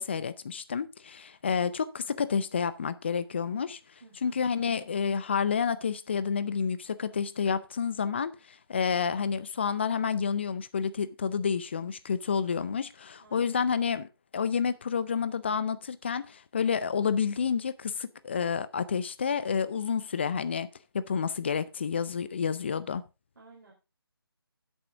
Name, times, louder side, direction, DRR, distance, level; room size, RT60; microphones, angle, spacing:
voice 1, 0.0-3.8 4.2-20.7 20.9-23.0, left 6 dB, 25° left, 0.5 m, -29 dB
voice 2, 4.0-4.4 13.2-13.6 23.4-23.7, right 3 dB, 50° right, 3.6 m, -55 dB
11.0 x 7.9 x 3.6 m
figure-of-eight pair, 160°, 13 cm